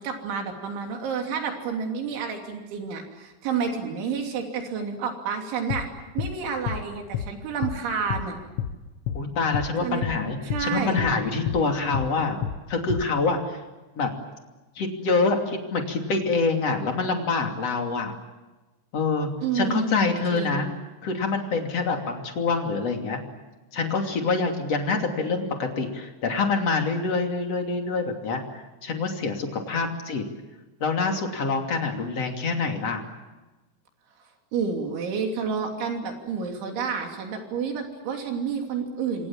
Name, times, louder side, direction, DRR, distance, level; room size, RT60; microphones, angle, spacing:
voice 1, 0.0-5.9 6.2-8.4 9.8-10.0 10.4-11.0 19.4-20.7 34.5-39.3, right 6 dB, 75° right, 3 dB, 5.3 m, -29 dB
sound 1, 5.7-5.9 6.2-6.3 6.7-6.8 7.1-7.3 7.6-7.8 8.1-8.3 8.6-8.7 9.1-9.2 9.5-9.7 10.0-10.2 10.5-10.7 11.0-11.1 11.5-11.6 11.9-12.1 12.4-12.6 12.9-13.1, left 9 dB, 90° left, 3.9 m, -29 dB
voice 2, 9.1-12.4 12.7-13.6 14.0-14.1 14.7-18.1 18.9-20.7 21.0-23.2 23.7-30.2 30.8-33.0, left 4 dB, 40° left, 3 dB, 3.3 m, -26 dB
27.5 x 26.0 x 7.4 m, 1.1 s
omnidirectional pair, 5.4 m